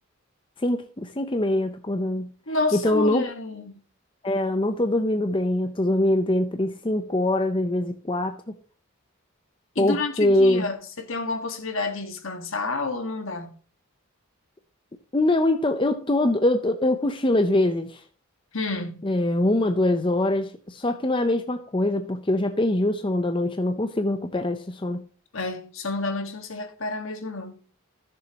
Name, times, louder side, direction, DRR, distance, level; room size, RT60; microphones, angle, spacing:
voice 1, 0.6-2.3 2.7-3.3 4.2-8.5 9.8-10.7 15.1-18.0 19.0-25.0, left 1 dB, 25° left, 0.6 m, -23 dB
voice 2, 2.5-3.8 9.7-13.5 18.5-19.1 25.3-27.6, left 3 dB, 65° left, 1.6 m, -30 dB
15.5 x 7.0 x 2.9 m
head